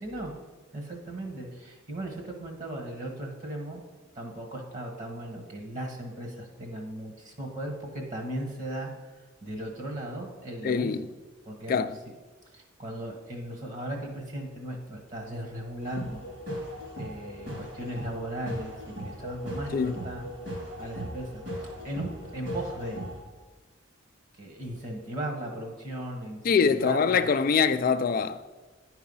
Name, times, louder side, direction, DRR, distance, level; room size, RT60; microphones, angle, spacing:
voice 1, 0.0-0.3 0.7-3.8 4.1-8.9 9.4-10.9 11.4-11.9 12.5-16.2 17.0-20.3 20.8-21.4 21.8-23.0 24.3-27.3, right 1 dB, 40° right, 1.3 m, -37 dB
voice 2, 10.6-11.1 11.7-12.0 19.7-20.0 26.4-28.4, left 5 dB, 45° left, 0.3 m, -24 dB
sound 1, 15.8-23.2, equal, 60° right, 2.6 m, -38 dB
10.0 x 4.7 x 5.5 m
head